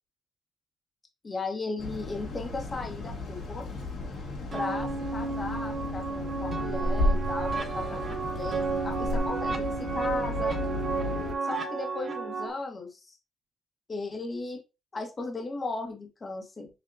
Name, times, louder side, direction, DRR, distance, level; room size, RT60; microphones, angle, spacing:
voice 1, 1.2-3.7 4.5-10.6 11.4-13.2 13.9-14.6 14.9-16.7, left 3 dB, 30° left, 3 dB, 1.3 m, -36 dB
sound 1, 1.8-11.3, left 1 dB, 65° left, 1.8 m, -33 dB
sound 2, 4.5-12.5, right 4 dB, 35° right, 1.1 m, -32 dB
6.9 x 2.8 x 2.7 m, 0.27 s
cardioid pair, 90°, 0 cm